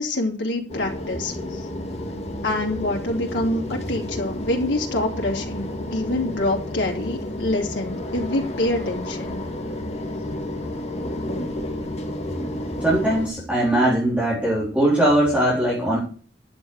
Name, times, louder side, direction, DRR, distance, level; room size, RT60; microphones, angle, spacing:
voice 1, 0.0-1.7 2.4-9.4, left 1 dB, 85° left, 0 dB, 3.1 m, -26 dB
sound 1, 0.7-13.3, left 1 dB, 35° left, 2.0 m, -31 dB
voice 2, 12.8-16.0, right 1 dB, 5° right, -7 dB, 4.2 m, -20 dB
11.5 x 7.9 x 6.6 m, 0.41 s
head